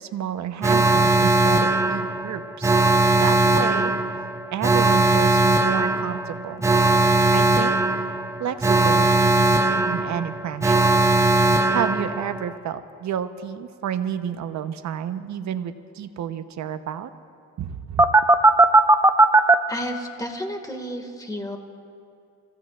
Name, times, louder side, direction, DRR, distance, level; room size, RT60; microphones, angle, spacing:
voice 1, 0.0-2.8 3.2-4.0 4.5-6.6 7.3-7.8 8.4-10.9 11.7-17.1 17.6-18.1, right 9 dB, 65° right, 10 dB, 0.9 m, -30 dB
Alarm, 0.6-12.5 18.0-19.5, right 2 dB, 10° right, 0.6 m, -19 dB
voice 2, 19.7-21.6, equal, 10° left, 4 dB, 1.8 m, -32 dB
29.5 x 16.0 x 2.4 m, 2.5 s
cardioid pair, 90°, 30 cm